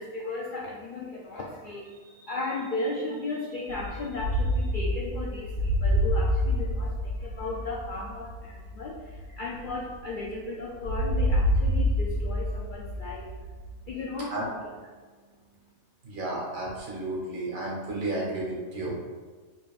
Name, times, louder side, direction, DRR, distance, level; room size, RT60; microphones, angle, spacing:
voice 1, 0.0-13.5 13.9-14.3 14.6-14.7, left 2 dB, 85° left, -2 dB, 0.4 m, -35 dB
sound 1, 3.7-10.3 10.8-14.0, equal, 60° left, 2.0 m, -28 dB
voice 2, 16.0-18.9, right 2 dB, 65° right, -3 dB, 1.6 m, -32 dB
5.1 x 4.1 x 2.4 m, 1.4 s
omnidirectional pair, 1.5 m